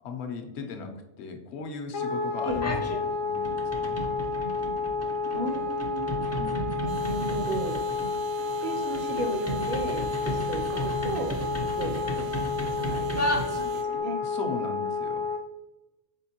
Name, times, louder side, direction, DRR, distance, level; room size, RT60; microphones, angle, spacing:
voice 1, 0.0-4.0 6.4-6.8 14.2-15.3, left 4 dB, 65° left, 5 dB, 0.9 m, -37 dB
Wind instrument woodwind instrument, 1.9-15.4, left 4 dB, 90° left, 1.0 m, -30 dB
sound 1, 2.5-3.0 3.3-14.0, equal, 25° left, 0.3 m, -34 dB
voice 2, 5.3-6.1 7.0-7.8 8.6-11.4 11.7-12.4 12.7-14.2, right 2 dB, 60° right, 1 dB, 0.6 m, -35 dB
sound 2, 6.9-13.8, right 3 dB, 85° right, 1.2 m, -49 dB
4.4 x 3.5 x 2.8 m, 1.0 s
omnidirectional pair, 1.3 m